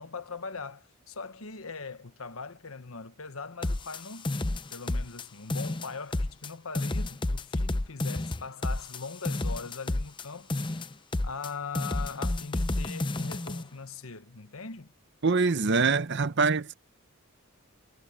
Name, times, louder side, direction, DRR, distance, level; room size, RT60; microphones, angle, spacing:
voice 1, 0.0-4.4 4.7-10.9 11.2-14.9, left 4 dB, 70° left, 1.2 m, -41 dB
sound 1, 3.6-5.2 5.5-6.5 6.7-10.2 10.5-11.5 11.7-13.6, left 2 dB, 20° left, 0.6 m, -31 dB
voice 2, 15.2-16.7, right 4 dB, 50° right, 0.8 m, -24 dB
head